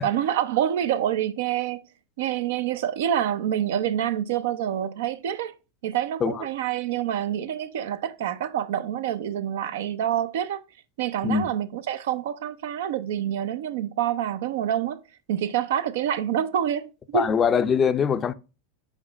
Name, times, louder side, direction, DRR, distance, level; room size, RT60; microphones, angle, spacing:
voice 1, 0.0-1.8 2.2-5.5 5.8-10.6 11.0-15.0 15.3-17.3, right 10 dB, 70° right, 0.6 m, -27 dB
voice 2, 17.1-18.3, left 6 dB, 30° left, 0.5 m, -22 dB
5.0 x 4.1 x 5.1 m
hypercardioid pair, 100°, 0 cm